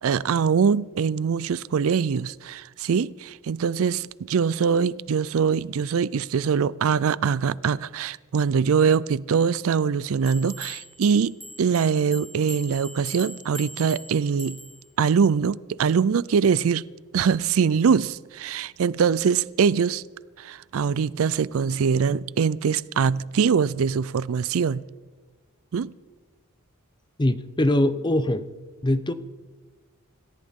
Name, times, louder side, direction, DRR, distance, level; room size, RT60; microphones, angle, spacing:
voice 1, 0.0-14.6 15.0-16.9 17.1-20.0 20.4-24.8 25.7-25.9, right 6 dB, 65° right, 0.4 m, -23 dB
sound 1, 10.3-14.9, equal, ahead, 1.7 m, -42 dB
voice 2, 27.2-28.4 28.8-29.1, left 1 dB, 20° left, 0.7 m, -22 dB
26.5 x 14.5 x 3.7 m
head